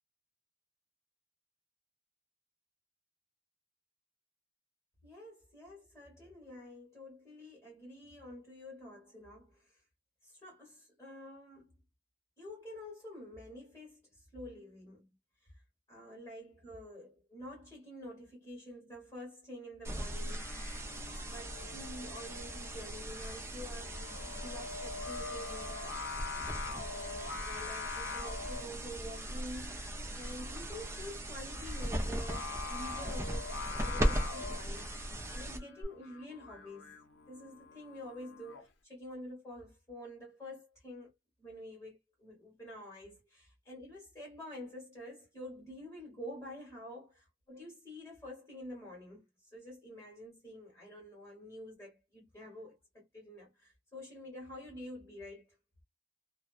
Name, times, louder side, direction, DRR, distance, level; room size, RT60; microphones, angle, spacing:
voice 1, 5.0-9.8 10.2-11.7 12.4-15.1 15.4-15.6 15.9-20.8 21.2-26.0 26.7-29.9 30.1-37.0 37.3-41.1 41.4-47.1 47.5-55.5, equal, 15° left, 1.3 m, -48 dB
sound 1, 19.8-35.8, right 1 dB, 15° right, 0.4 m, -38 dB
Singing, 20.2-38.6, left 5 dB, 60° left, 0.5 m, -45 dB
2.5 x 2.1 x 2.4 m
head